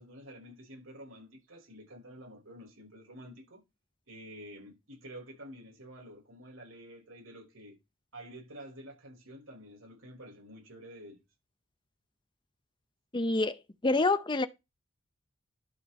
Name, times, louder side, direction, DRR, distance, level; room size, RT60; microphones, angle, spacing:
voice 1, 0.0-3.6 4.1-7.7 8.1-11.2, equal, 80° right, 5.5 m, -49 dB
voice 2, 13.1-13.6 13.8-14.5, left 2 dB, 20° left, 0.6 m, -26 dB
12.0 x 5.2 x 4.2 m
head